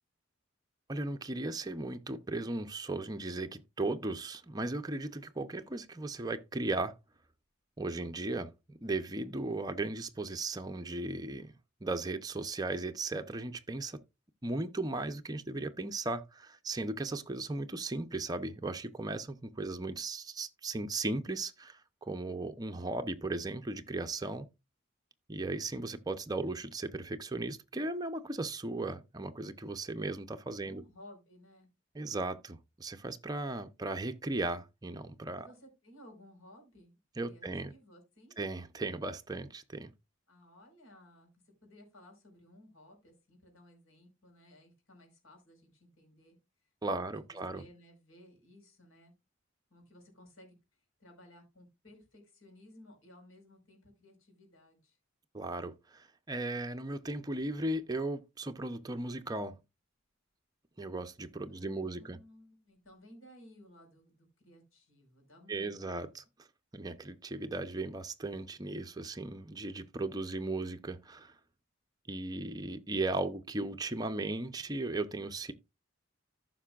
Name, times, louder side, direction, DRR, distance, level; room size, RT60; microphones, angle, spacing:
voice 1, 0.9-7.0 7.8-11.5 11.8-14.0 14.4-24.5 25.3-30.8 31.9-35.5 37.2-37.7 38.4-39.9 46.8-47.6 55.3-59.6 60.8-62.2 65.5-66.2 66.7-71.3 72.1-75.5, right 2 dB, 20° right, 0.6 m, -36 dB
voice 2, 30.6-31.7 35.4-38.4 40.3-41.3 41.6-46.4 46.9-49.1 49.7-50.5 51.0-55.0 61.5-66.2, left 1 dB, 85° left, 4.5 m, -58 dB
14.5 x 5.9 x 2.4 m
head